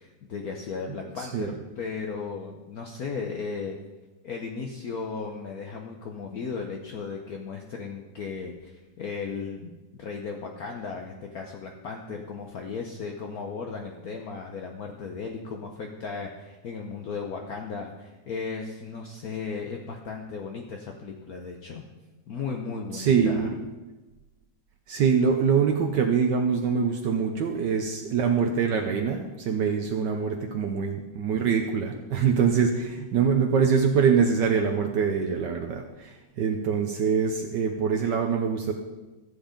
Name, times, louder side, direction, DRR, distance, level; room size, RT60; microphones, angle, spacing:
voice 1, 0.0-3.8 4.2-21.8 22.3-23.5, left 5 dB, 55° left, 2 dB, 1.2 m, -36 dB
voice 2, 0.9-1.5 22.9-23.6 24.9-38.7, right 6 dB, 70° right, 4 dB, 1.4 m, -24 dB
14.5 x 7.7 x 5.1 m, 1.1 s
omnidirectional pair, 2.1 m